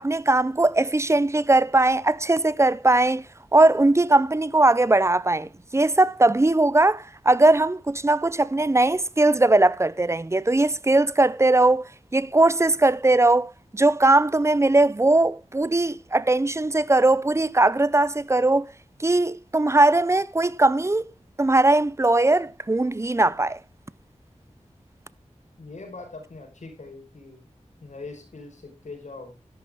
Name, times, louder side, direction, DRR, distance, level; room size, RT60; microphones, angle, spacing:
voice 1, 0.0-3.2 3.5-11.8 12.1-18.7 19.0-21.0 21.4-23.6, right 2 dB, 25° right, 0.6 m, -20 dB
voice 2, 25.6-27.4 27.8-29.4, left 3 dB, 80° left, 4.8 m, -41 dB
12.5 x 11.5 x 3.6 m
wide cardioid pair, 80°, 12 cm